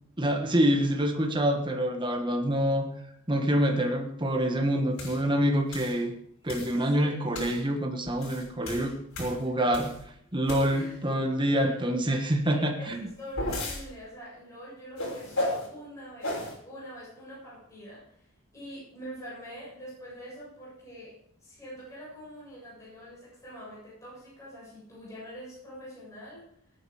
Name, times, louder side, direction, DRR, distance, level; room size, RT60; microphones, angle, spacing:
voice 1, 0.2-2.9 3.3-6.1 6.4-9.9 10.3-13.1, equal, 20° right, 3 dB, 1.4 m, -26 dB
sound 1, 5.0-5.2 5.7-6.0 6.5-6.8 7.3-7.6 8.1-10.0 10.4-11.0 12.9-13.8 15.0-15.7 16.2-16.5, left 1 dB, 65° left, 5.9 m, -34 dB
voice 2, 6.8-7.3 10.7-10.9 11.6-11.9 12.4-18.1 18.5-21.1 21.4-26.4, equal, 15° left, -7 dB, 7.7 m, -45 dB
19.0 x 9.0 x 4.9 m, 0.70 s
head